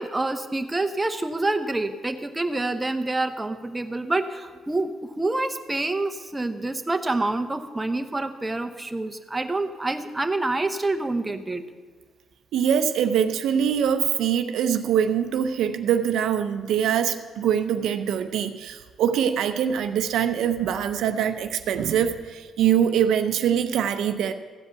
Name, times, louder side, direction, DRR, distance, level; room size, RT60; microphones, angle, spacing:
voice 1, 0.0-11.6, right 2 dB, 15° right, 7 dB, 0.9 m, -27 dB
voice 2, 12.5-24.3, right 8 dB, 80° right, 8 dB, 0.6 m, -23 dB
14.5 x 5.3 x 8.1 m, 1.5 s
cardioid pair, 90°, 0 cm